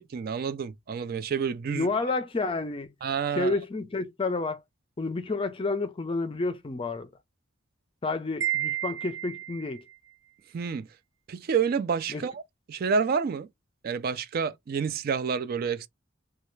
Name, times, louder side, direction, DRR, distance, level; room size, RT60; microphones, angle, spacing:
voice 1, 0.0-1.9 3.0-3.5 10.5-10.9 11.3-12.4 12.7-13.5 13.8-15.9, right 6 dB, 50° right, 0.3 m, -29 dB
voice 2, 1.7-2.9 3.3-4.6 5.0-7.1 8.0-9.8 12.1-12.2, left 3 dB, 25° left, 0.4 m, -30 dB
Wind chime, 8.4-9.8, right 13 dB, 70° right, 0.7 m, -31 dB
3.2 x 2.3 x 3.1 m
head